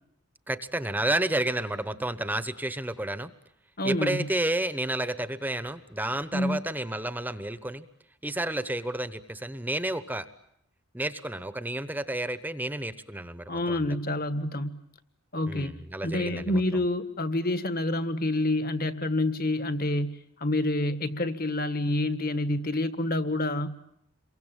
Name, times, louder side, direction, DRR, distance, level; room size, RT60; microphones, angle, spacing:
voice 1, 0.5-3.3 3.8-7.9 8.2-10.3 10.9-13.8 15.5-16.6, right 1 dB, 10° right, 12 dB, 1.0 m, -31 dB
voice 2, 3.8-4.3 6.3-6.6 13.5-14.8 15.3-23.9, left 1 dB, 45° left, 12 dB, 1.7 m, -28 dB
28.5 x 23.5 x 9.0 m, 0.75 s
head